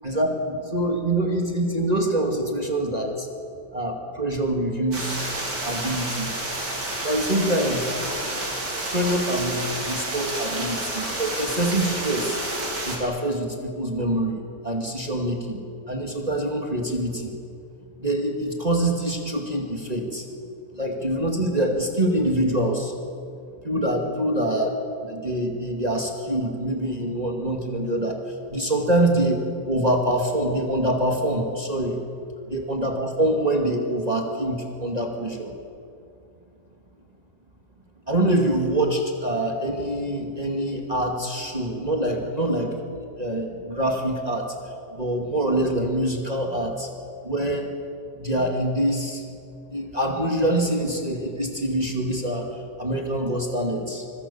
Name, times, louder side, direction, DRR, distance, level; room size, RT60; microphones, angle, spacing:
voice 1, 0.0-3.3 3.7-5.2 5.6-6.3 7.0-7.8 8.9-12.4 12.8-15.6 15.9-17.3 18.0-20.2 20.7-22.9 23.6-32.0 32.5-35.5 38.1-42.7 43.1-44.5 44.9-46.9 47.2-47.7 48.2-49.2 49.7-54.0, right 1 dB, 25° right, 1 dB, 2.4 m, -25 dB
sound 1, 4.9-13.0, right 1 dB, 90° right, 5.1 m, -30 dB
25.5 x 24.0 x 7.2 m, 2.4 s
omnidirectional pair, 1.8 m